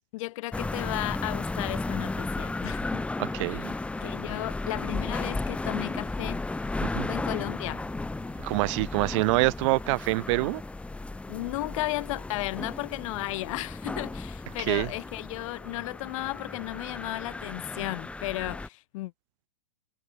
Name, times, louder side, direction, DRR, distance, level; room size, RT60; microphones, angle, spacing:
voice 1, 0.1-3.1 3.5-3.7 4.0-6.5 7.1-7.9 11.3-19.1, left 19 dB, 50° left, 7.1 m, -34 dB
sound 1, 0.5-18.7, left 2 dB, 5° left, 1.4 m, -34 dB
voice 2, 3.2-3.7 6.8-7.1 8.4-10.6 14.7-14.9, right 24 dB, 45° right, 1.9 m, -26 dB
sound 2, 3.9-12.5, right 5 dB, 15° right, 6.7 m, -53 dB
hypercardioid pair, 120°, 21 cm